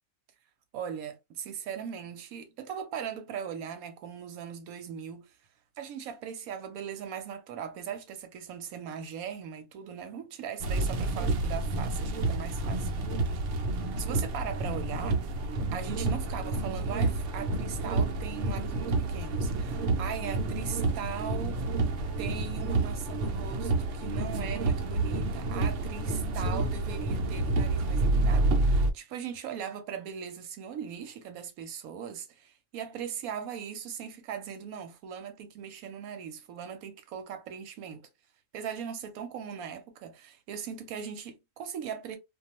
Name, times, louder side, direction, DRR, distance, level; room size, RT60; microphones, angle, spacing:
voice 1, 0.7-5.3 5.8-12.9 14.0-15.2 15.7-21.6 22.2-38.1 38.5-42.2, right 8 dB, 90° right, 1.1 m, -39 dB
sound 1, 10.6-28.9, right 2 dB, 65° right, 0.9 m, -29 dB
2.3 x 2.3 x 2.8 m
omnidirectional pair, 1.5 m